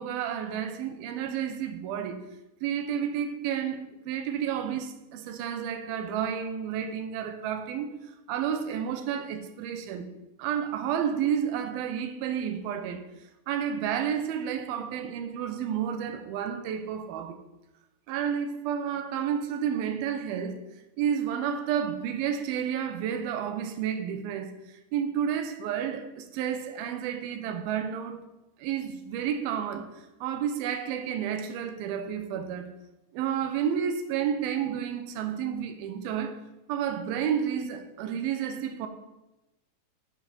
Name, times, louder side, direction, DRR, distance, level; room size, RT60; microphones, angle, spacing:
voice 1, 0.0-2.2 2.6-8.0 8.3-10.1 10.4-13.1 13.5-17.4 18.1-20.6 21.0-24.5 24.9-28.2 28.6-32.7 33.1-36.4 36.7-38.9, right 8 dB, 80° right, 2.6 m, -31 dB
13.0 x 4.5 x 4.2 m
omnidirectional pair, 4.4 m